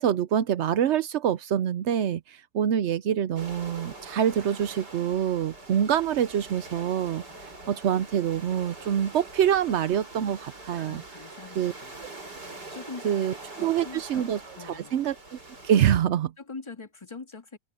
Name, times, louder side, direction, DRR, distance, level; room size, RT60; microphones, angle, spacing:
voice 1, 0.0-7.2 7.7-11.0 11.6-11.7 13.0-15.1 15.6-16.3, right 9 dB, 80° right, 0.6 m, -25 dB
sound 1, 3.4-15.8, right 2 dB, 65° right, 7.1 m, -44 dB
voice 2, 10.8-12.0 12.7-14.2 14.5-15.0 16.4-17.6, left 4 dB, 15° left, 1.7 m, -43 dB
open air
omnidirectional pair, 2.0 m